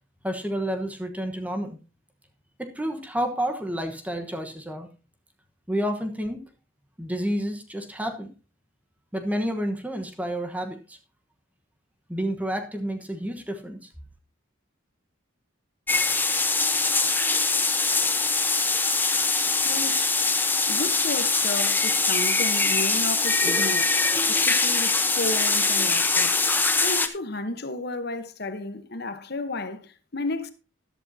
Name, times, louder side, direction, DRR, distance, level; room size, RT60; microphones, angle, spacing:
voice 1, 0.2-1.8 2.6-4.9 5.7-6.4 7.0-8.3 9.1-11.0 12.1-13.9, equal, 5° right, 1.1 m, -30 dB
sound 1, 15.9-27.1, left 3 dB, 10° left, 0.8 m, -23 dB
voice 2, 19.6-20.1 20.7-23.9 24.3-30.5, left 2 dB, 50° left, 1.0 m, -33 dB
13.5 x 11.5 x 2.7 m
head